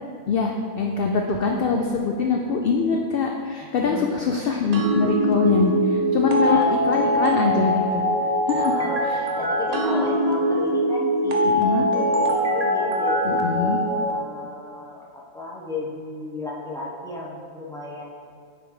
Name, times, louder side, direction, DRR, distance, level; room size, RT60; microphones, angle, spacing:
voice 1, 0.3-8.0 8.5-8.7 9.0-9.2 11.4-11.9 13.3-13.8, left 4 dB, 65° left, 1 dB, 0.5 m, -23 dB
voice 2, 3.8-4.3 6.4-6.8 8.5-18.0, left 2 dB, 5° left, -6 dB, 0.8 m, -34 dB
sound 1, 4.7-14.1, equal, 40° right, 0.5 m, -22 dB
8.9 x 3.4 x 4.7 m, 2.2 s
omnidirectional pair, 1.5 m